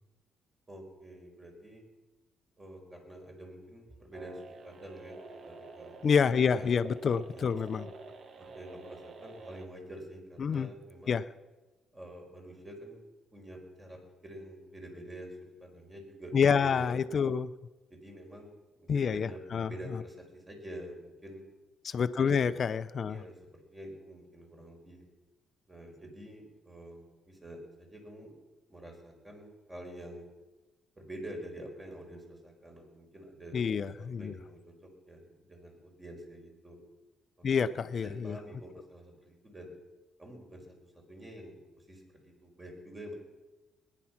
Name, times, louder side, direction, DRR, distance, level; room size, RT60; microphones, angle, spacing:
voice 1, 0.7-1.8 2.6-6.0 6.2-6.8 7.1-7.5 8.4-11.2 11.9-13.0 13.3-15.3 15.6-17.0 17.9-18.5 18.8-21.4 22.2-22.7 23.1-25.0 25.7-28.3 28.7-30.3 31.0-33.6 34.0-36.8 38.0-39.7 40.2-43.1, right 1 dB, 20° right, 1 dB, 4.9 m, -47 dB
sound 1, 4.1-9.7, right 3 dB, 55° right, 1.4 m, -48 dB
voice 2, 6.0-7.9 10.4-10.7 11.1-11.3 16.3-17.5 18.9-20.0 21.8-23.2 33.5-34.3 37.4-38.4, left 6 dB, 50° left, 14 dB, 0.6 m, -28 dB
20.0 x 10.0 x 5.9 m, 1.1 s
cardioid pair, 90°, 0 cm